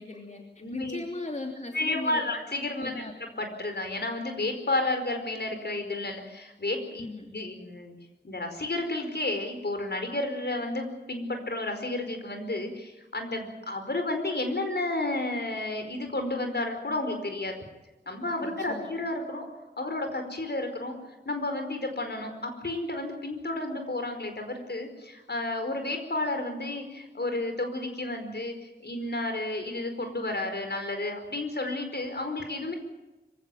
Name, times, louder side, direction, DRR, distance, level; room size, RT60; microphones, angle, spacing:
voice 1, 0.0-0.4 0.7-2.2 2.8-3.1 7.0-7.3 18.4-18.9, left 2 dB, 40° left, 1 dB, 3.1 m, -38 dB
voice 2, 0.6-1.0 1.7-7.9 8.2-17.5 18.1-19.5 19.8-20.9 21.2-32.7, left 2 dB, 70° left, 6 dB, 4.8 m, -32 dB
25.5 x 16.5 x 9.2 m, 1.1 s
wide cardioid pair, 60°, 18 cm